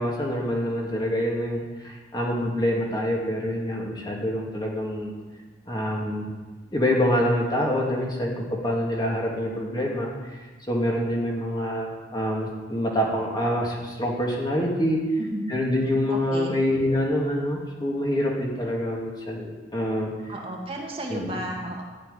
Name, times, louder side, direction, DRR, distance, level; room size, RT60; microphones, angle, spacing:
voice 1, 0.0-5.1 5.7-6.3 6.7-15.0 15.5-20.1 21.1-21.4, equal, 25° left, -2 dB, 2.5 m, -26 dB
voice 2, 15.2-15.5 16.1-16.6 20.3-21.8, right 1 dB, 35° right, -1 dB, 1.9 m, -33 dB
12.5 x 6.7 x 9.9 m, 1.3 s
head